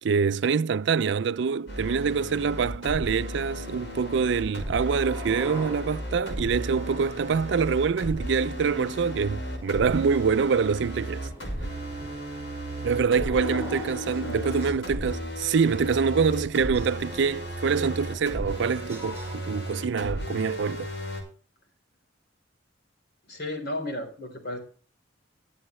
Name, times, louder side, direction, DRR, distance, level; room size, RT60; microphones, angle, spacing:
voice 1, 0.0-11.3 12.8-20.9, right 5 dB, 65° right, 0.4 m, -25 dB
sound 1, 1.7-21.2, equal, 80° left, 5.5 m, -35 dB
sound 2, 2.9-19.4, right 1 dB, 15° right, 6.8 m, -45 dB
voice 2, 13.1-13.7 14.2-14.9 23.3-24.6, left 1 dB, 60° left, 3.6 m, -35 dB
21.0 x 7.2 x 3.2 m
head